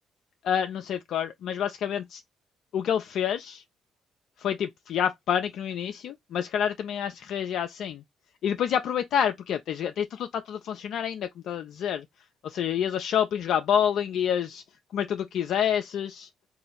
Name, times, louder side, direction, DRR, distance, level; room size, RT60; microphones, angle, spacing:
voice 1, 0.4-2.2 2.7-3.6 4.4-8.0 8.4-12.1 12.4-14.6 14.9-16.3, left 9 dB, 65° left, 0.3 m, -28 dB
3.8 x 2.5 x 3.8 m
hypercardioid pair, 45°, 0 cm